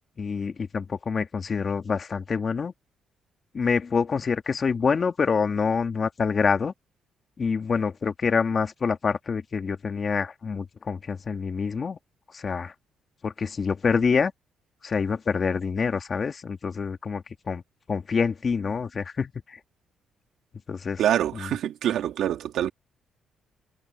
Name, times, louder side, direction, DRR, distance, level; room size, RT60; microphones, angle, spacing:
voice 1, 0.2-2.7 3.5-6.7 7.4-12.0 12.3-12.7 13.2-14.3 14.8-17.6 17.9-19.6 20.7-21.0 21.3-21.5, left 5 dB, 40° left, 2.1 m, -26 dB
voice 2, 21.0-22.7, right 11 dB, 75° right, 2.5 m, -25 dB
cardioid pair, 90°, 0 cm